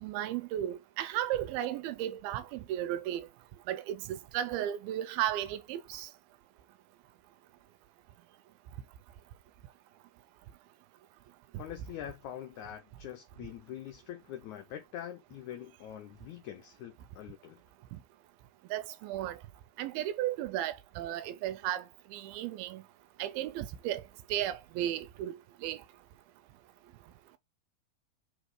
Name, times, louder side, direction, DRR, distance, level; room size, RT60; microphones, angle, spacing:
voice 1, 0.0-3.3 3.7-6.1 18.7-19.4 19.8-21.8 22.1-22.8 23.2-24.0 24.3-25.8, right 12 dB, 85° right, 2.5 m, -34 dB
voice 2, 11.6-17.6, left 11 dB, 80° left, 1.7 m, -44 dB
5.4 x 4.1 x 4.8 m
omnidirectional pair, 4.3 m